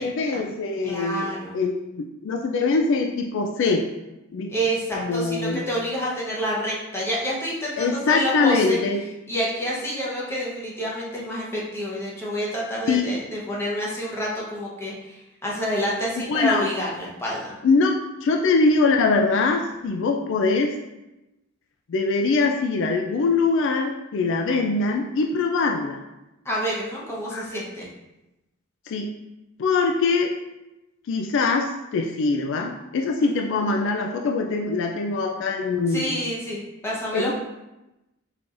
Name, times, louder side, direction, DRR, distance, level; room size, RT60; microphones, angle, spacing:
voice 1, 0.0-3.8 4.3-4.5 4.9-5.6 7.8-9.0 12.9-13.1 16.2-16.7 17.6-20.7 21.9-26.0 27.3-27.5 28.9-29.1 29.6-30.3 31.1-36.2 37.1-37.3, left 3 dB, 65° left, 2 dB, 0.3 m, -23 dB
voice 2, 0.8-1.6 4.5-8.8 9.3-17.5 26.4-27.9 33.2-33.3 35.9-37.3, equal, 10° left, -5 dB, 0.9 m, -28 dB
4.4 x 3.8 x 2.5 m, 0.97 s
head